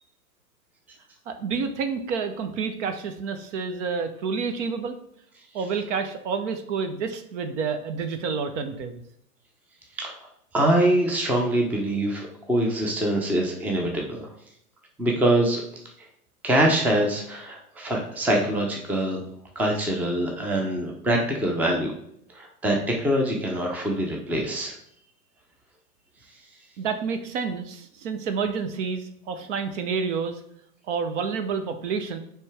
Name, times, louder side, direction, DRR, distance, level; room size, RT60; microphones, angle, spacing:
voice 1, 1.3-5.0 5.5-9.0 26.8-30.4 30.9-32.2, right 5 dB, 50° right, 8 dB, 0.8 m, -29 dB
voice 2, 10.5-14.3 15.0-15.6 16.4-19.2 19.6-21.9 22.3-24.7, right 1 dB, 5° right, 0 dB, 0.6 m, -24 dB
8.4 x 3.3 x 3.3 m, 0.72 s
hypercardioid pair, 115°, 47 cm